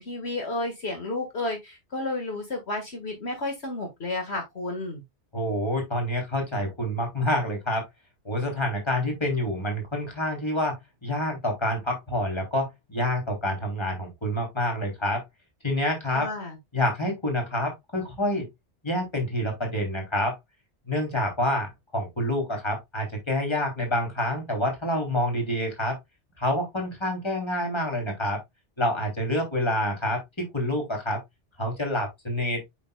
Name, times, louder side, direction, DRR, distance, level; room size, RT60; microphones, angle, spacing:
voice 1, 0.0-5.0 16.1-16.6, left 2 dB, 65° left, 2.0 m, -32 dB
voice 2, 5.3-7.8 8.2-15.2 15.6-16.3 16.7-18.5 18.8-20.4 20.9-26.0 26.4-28.4 28.8-31.2 31.6-32.6, left 1 dB, 25° left, 3.1 m, -27 dB
8.3 x 6.1 x 2.2 m
omnidirectional pair, 1.2 m